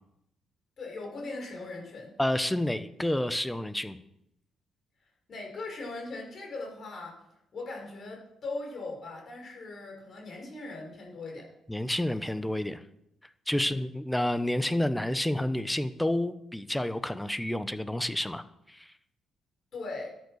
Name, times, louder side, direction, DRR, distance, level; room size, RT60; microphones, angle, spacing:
voice 1, 0.8-2.1 5.3-7.2 7.5-11.5 13.6-13.8 19.7-20.1, left 3 dB, 50° left, 0 dB, 5.9 m, -39 dB
voice 2, 2.2-4.0 11.7-12.8 13.5-18.9, left 1 dB, 5° left, 12 dB, 0.9 m, -29 dB
13.0 x 9.5 x 6.5 m, 0.79 s
cardioid pair, 90°, 0 cm